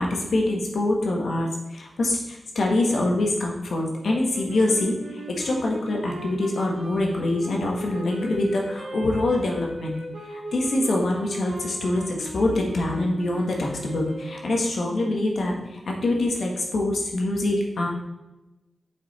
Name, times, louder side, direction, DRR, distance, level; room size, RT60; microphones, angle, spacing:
voice 1, 0.0-10.0 10.3-17.9, left 2 dB, 70° left, 0 dB, 1.6 m, -25 dB
sound 1, 4.0-14.7, right 1 dB, 70° right, 2.1 m, -38 dB
7.4 x 5.5 x 4.3 m, 1.0 s
wide cardioid pair, 140°, 0 cm